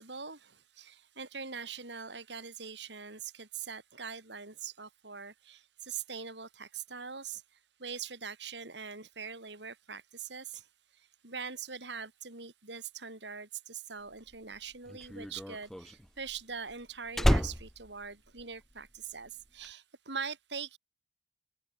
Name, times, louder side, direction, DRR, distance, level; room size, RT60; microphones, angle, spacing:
voice 1, 0.0-10.7 10.9-20.8, right 6 dB, 65° right, 4.4 m, -43 dB
Slam, 14.2-19.0 19.2-19.7, equal, ahead, 0.3 m, -31 dB
open air
head